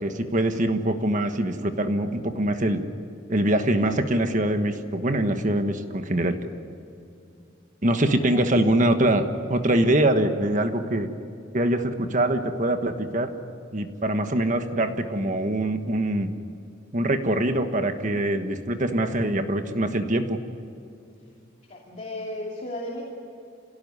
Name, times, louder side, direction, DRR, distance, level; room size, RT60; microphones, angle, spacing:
voice 1, 0.0-2.8 3.3-6.4 7.8-11.1 11.5-13.3 13.7-16.3 16.9-20.4, right 1 dB, 40° right, 7 dB, 1.4 m, -23 dB
voice 2, 8.0-8.5 21.7-23.0, left 1 dB, 35° left, -3 dB, 2.7 m, -35 dB
27.0 x 17.5 x 9.7 m, 2.6 s
head